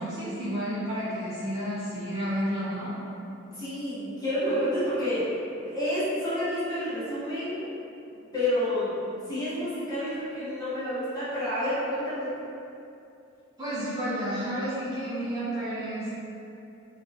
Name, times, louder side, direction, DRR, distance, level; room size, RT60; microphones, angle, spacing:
voice 1, 0.0-2.9 13.6-16.1, equal, 20° right, -13 dB, 0.6 m, -31 dB
voice 2, 3.5-5.3 5.6-7.6 8.1-12.3, left 1 dB, 20° left, -13 dB, 0.9 m, -29 dB
2.7 x 2.4 x 2.4 m, 2.7 s
head